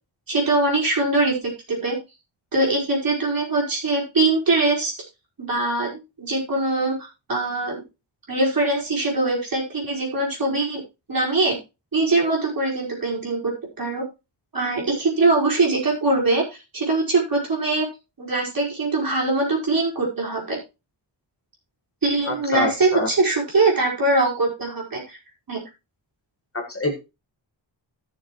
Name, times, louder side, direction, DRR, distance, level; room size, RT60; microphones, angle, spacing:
voice 1, 0.3-2.0 2.5-4.9 5.4-7.0 7.3-7.8 8.3-10.8 11.1-11.6 11.9-13.5 13.8-14.0 14.5-17.9 18.2-20.6 22.0-25.2 25.5-25.6, right 2 dB, 45° right, -3 dB, 5.1 m, -22 dB
voice 2, 22.3-23.1 26.5-27.1, left 2 dB, 30° left, 2 dB, 1.7 m, -26 dB
17.0 x 7.0 x 3.1 m, 0.27 s
wide cardioid pair, 170°, 46 cm